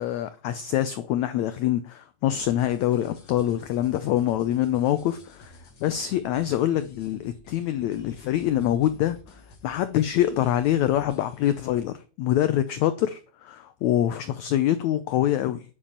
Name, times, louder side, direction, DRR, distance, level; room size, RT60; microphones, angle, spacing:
voice 1, 0.0-9.2 9.6-13.1 13.5-15.6, left 12 dB, 85° left, 1.6 m, -25 dB
sound 1, 2.3-11.8, left 3 dB, 35° left, 2.6 m, -52 dB
10.0 x 6.5 x 8.7 m
omnidirectional pair, 4.2 m